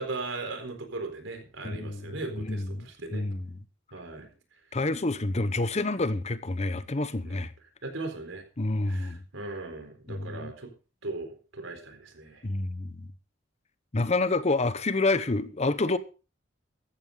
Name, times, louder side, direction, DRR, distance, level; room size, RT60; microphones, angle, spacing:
voice 1, 0.0-3.3 3.9-4.3 7.2-7.4 7.8-8.4 8.9-10.7 11.0-12.4, right 3 dB, 90° right, 4.2 m, -38 dB
voice 2, 1.6-2.1 2.3-2.9 3.1-3.5 4.7-7.5 8.6-9.2 10.1-10.5 12.4-13.1 13.9-16.0, left 2 dB, 35° left, 0.9 m, -28 dB
14.5 x 13.5 x 3.9 m
head